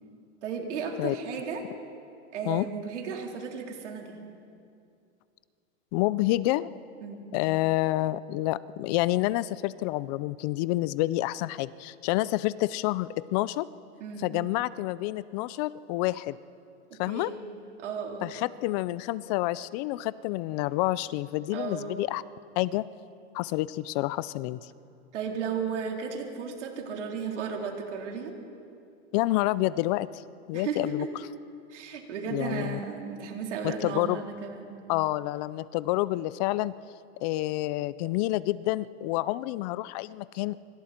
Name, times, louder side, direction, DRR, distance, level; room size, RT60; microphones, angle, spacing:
voice 1, 0.4-1.6 2.3-4.2 7.0-7.2 14.0-14.3 17.1-17.4 17.8-18.3 21.5-21.9 25.1-28.3 30.5-31.1 31.7-34.7, right 5 dB, 90° right, 0 dB, 4.0 m, -34 dB
voice 2, 5.9-6.7 7.3-13.7 14.2-16.4 17.0-17.3 18.2-22.2 22.6-22.8 23.3-24.6 29.1-30.2 30.5-31.0 32.3-32.8 33.6-34.2 34.9-36.7 37.2-40.6, left 17 dB, 35° left, 18 dB, 0.4 m, -28 dB
25.0 x 25.0 x 4.4 m, 2.5 s
supercardioid pair, 145°, 34 cm